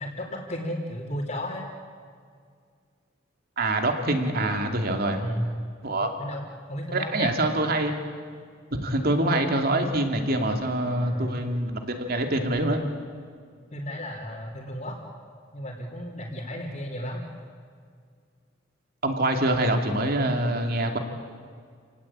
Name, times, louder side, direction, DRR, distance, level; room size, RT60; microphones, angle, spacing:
voice 1, 0.0-1.7 5.2-5.5 6.2-6.4 6.7-7.4 11.0-11.4 13.7-15.0 15.5-17.3, equal, 40° left, -7 dB, 3.5 m, -33 dB
voice 2, 3.6-5.2 5.8-6.1 6.9-8.0 8.8-12.8 19.0-21.0, right 1 dB, 50° right, 4 dB, 2.7 m, -25 dB
29.5 x 18.5 x 8.9 m, 2.1 s
head